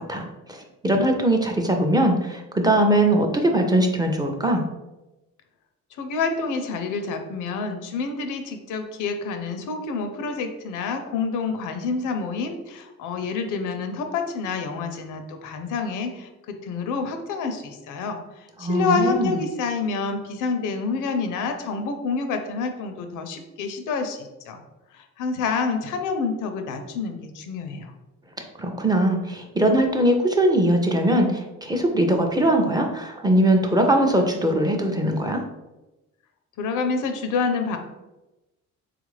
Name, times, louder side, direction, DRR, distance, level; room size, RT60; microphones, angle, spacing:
voice 1, 0.0-4.6 18.6-19.4 28.6-35.4, right 1 dB, 15° right, 2 dB, 0.4 m, -21 dB
voice 2, 6.0-24.6 24.9-27.9 36.6-37.8, left 4 dB, 85° left, 6 dB, 0.5 m, -28 dB
3.5 x 2.4 x 3.1 m, 1.0 s
cardioid pair, 90°, 30 cm